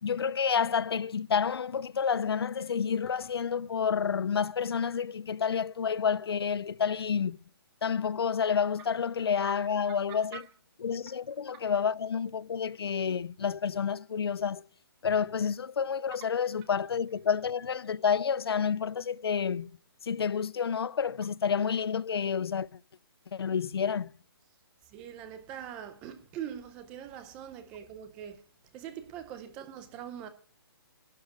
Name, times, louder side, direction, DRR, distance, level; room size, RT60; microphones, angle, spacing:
voice 1, 0.0-7.4 7.8-10.4 10.8-14.7 15.0-19.7 20.0-22.8 23.3-24.1, left 7 dB, 85° left, 0.5 m, -29 dB
voice 2, 24.9-28.4 28.7-30.3, right 9 dB, 10° right, 0.5 m, -42 dB
11.5 x 7.2 x 8.1 m
hypercardioid pair, 175°, 13 cm